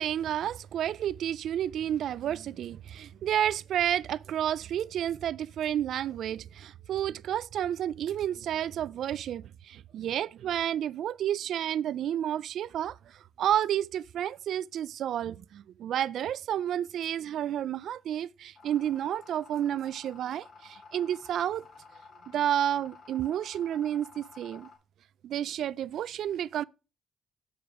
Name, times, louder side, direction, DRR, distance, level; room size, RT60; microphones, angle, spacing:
voice 1, 0.0-13.0 13.4-21.6 22.3-24.7 25.2-26.6, right 10 dB, 70° right, 0.3 m, -31 dB
sound 1, 18.6-24.8, left 4 dB, 55° left, 2.4 m, -52 dB
6.9 x 6.7 x 3.5 m
cardioid pair, 90°, 0 cm